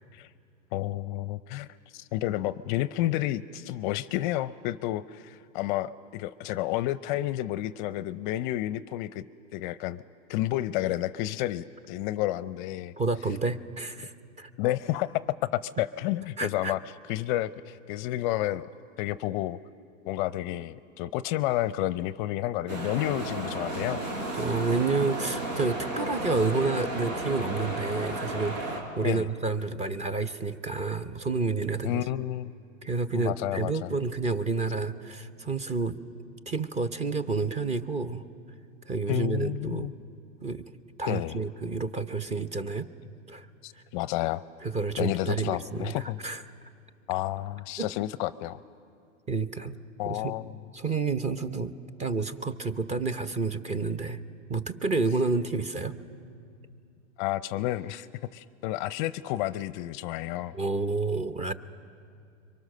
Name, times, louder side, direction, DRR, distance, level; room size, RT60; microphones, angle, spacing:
voice 1, 0.7-1.7 1.9-9.2 9.5-10.0 10.3-12.9 14.6-16.8 17.1-18.7 19.0-19.6 20.0-24.0 29.0-29.3 31.8-32.5 33.1-33.9 39.1-39.9 41.1-41.4 43.6-44.4 45.0-46.2 47.1-48.6 50.0-50.6 57.2-58.1 58.3-60.5, left 15 dB, 40° left, 15 dB, 0.5 m, -30 dB
voice 2, 13.0-14.5 16.4-16.7 24.3-32.1 32.8-36.0 36.5-38.3 38.9-39.9 40.4-40.7 41.0-42.9 43.3-43.5 44.6-46.4 47.8-47.9 49.3-49.8 50.1-50.4 50.7-51.7 52.0-54.2 54.5-55.9 60.5-61.5, right 4 dB, 15° right, 13 dB, 0.8 m, -29 dB
sound 1, 22.7-28.8, right 1 dB, 85° right, 5.9 m, -33 dB
30.0 x 23.5 x 6.6 m, 2.4 s
hypercardioid pair, 125°, 38 cm